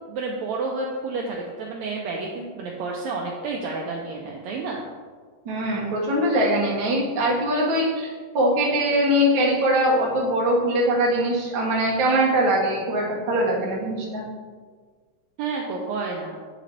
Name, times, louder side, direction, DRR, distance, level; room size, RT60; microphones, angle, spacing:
voice 1, 0.1-4.8 15.4-16.4, right 3 dB, 80° right, -1 dB, 1.6 m, -30 dB
voice 2, 5.4-14.2, right 1 dB, 55° right, -4 dB, 1.4 m, -22 dB
8.4 x 3.3 x 3.8 m, 1.6 s
omnidirectional pair, 3.7 m